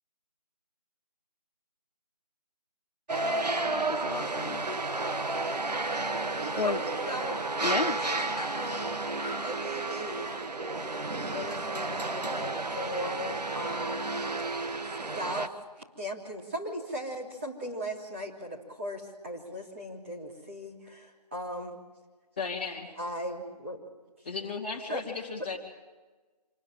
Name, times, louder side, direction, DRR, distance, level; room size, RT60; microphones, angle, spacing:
sound 1, 3.1-15.5, right 3 dB, 80° right, 1.5 m, -32 dB
voice 1, 3.6-4.6 5.3-5.6 6.6-6.8 7.6-8.6, left 4 dB, 70° left, 0.7 m, -34 dB
voice 2, 6.4-9.0 9.4-10.4 11.3-14.0 15.1-15.5 16.0-21.8 22.9-23.8 24.9-25.0, equal, 20° right, 3.2 m, -38 dB
voice 3, 22.4-22.9 24.2-25.6, left 4 dB, 15° left, 2.4 m, -35 dB
27.0 x 20.5 x 7.5 m
figure-of-eight pair, 175°, 21 cm